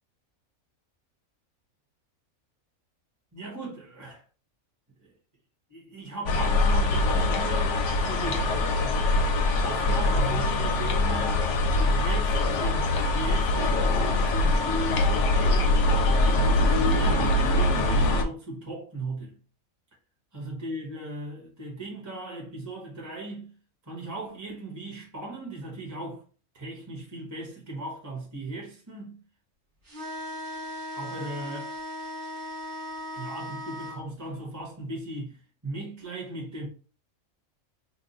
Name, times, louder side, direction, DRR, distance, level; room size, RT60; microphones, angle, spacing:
voice 1, 3.3-4.2 5.0-5.1 5.7-8.6 9.6-11.4 11.8-15.9 16.2-19.4 20.3-23.5 23.8-26.2 26.5-29.2 30.9-31.7 33.1-36.7, right 2 dB, 15° right, 0.7 m, -38 dB
sound 1, 6.3-18.2, left 2 dB, 65° left, 0.8 m, -23 dB
sound 2, 29.9-34.0, left 1 dB, 40° right, 1.0 m, -37 dB
2.9 x 2.1 x 3.9 m
omnidirectional pair, 1.5 m